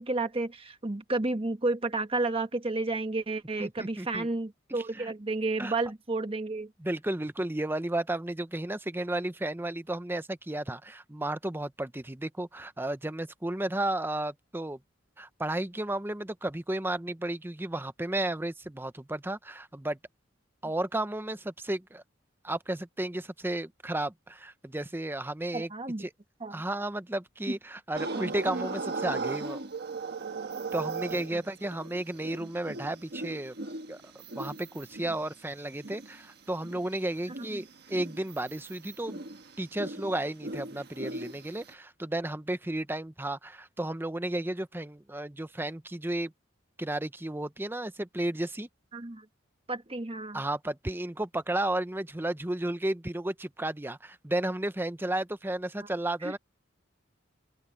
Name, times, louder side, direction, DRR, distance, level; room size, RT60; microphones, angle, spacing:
voice 1, 0.0-6.7 25.5-26.1 26.4-26.6 27.5-27.6 31.3-31.4 31.9-32.0 37.4-37.6 48.9-49.3 49.7-50.4 55.8-55.9 56.2-56.4, right 2 dB, 30° right, 1.2 m, -31 dB
voice 2, 3.6-4.3 5.0-5.1 5.6-5.7 6.8-14.8 15.2-20.0 20.6-22.0 22.4-25.7 26.0-26.1 26.5-29.6 30.7-33.5 33.9-39.2 39.6-46.3 46.8-48.7 50.3-56.4, right 1 dB, 10° right, 0.7 m, -33 dB
sound 1, 28.0-36.2 36.6-41.7, right 3 dB, 55° right, 1.4 m, -38 dB
open air
head